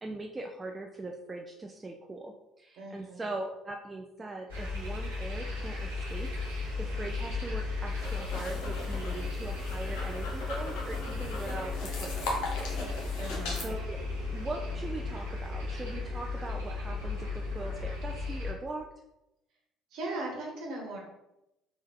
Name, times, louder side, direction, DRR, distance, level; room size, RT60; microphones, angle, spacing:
voice 1, 0.0-6.3 6.8-12.8 13.1-13.2 13.6-14.0 14.3-18.9, right 2 dB, 25° right, 2 dB, 0.4 m, -41 dB
voice 2, 2.8-3.2 13.2-13.7 19.9-21.0, right 2 dB, 60° right, -1 dB, 1.2 m, -38 dB
sound 1, 4.5-18.5, left 3 dB, 85° right, 1.1 m, -35 dB
sound 2, 5.8-15.1, left 3 dB, 10° left, 1.5 m, -54 dB
sound 3, 7.9-13.7, left 2 dB, 65° left, 0.9 m, -39 dB
3.6 x 2.3 x 4.3 m, 0.90 s
hypercardioid pair, 55°, 0 cm